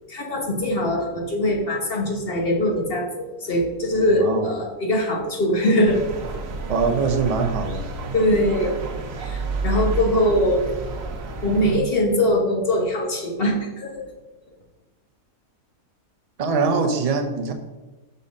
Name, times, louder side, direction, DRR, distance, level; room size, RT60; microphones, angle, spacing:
voice 1, 0.1-6.0 8.1-8.7 9.2-10.6 11.4-13.9, left 1 dB, 40° left, 0 dB, 1.3 m, -22 dB
voice 2, 4.2-4.5 6.7-7.8 16.4-17.5, right 4 dB, 45° right, 4 dB, 0.5 m, -22 dB
sound 1, 5.8-11.8, right 3 dB, 60° right, 1.2 m, -30 dB
5.6 x 5.4 x 5.1 m, 1.2 s
omnidirectional pair, 1.7 m